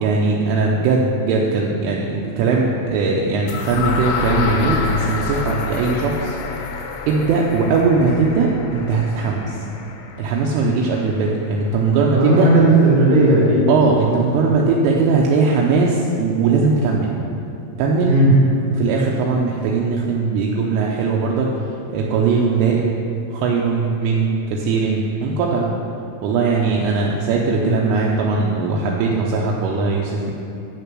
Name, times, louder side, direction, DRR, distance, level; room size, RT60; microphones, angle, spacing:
voice 1, 0.0-6.4 6.6-6.7 7.1-9.6 10.2-12.5 13.7-17.1 17.8-18.2 18.7-23.0 23.3-25.7 26.2-30.3, right 4 dB, 80° right, -2 dB, 3.2 m, -19 dB
sound 1, 3.5-11.4, left 5 dB, 85° left, 2.3 m, -27 dB
voice 2, 12.1-13.6 18.0-18.3 27.6-27.8, right 2 dB, 60° right, -5 dB, 3.0 m, -15 dB
9.7 x 6.7 x 6.1 m, 2.6 s
omnidirectional pair, 5.8 m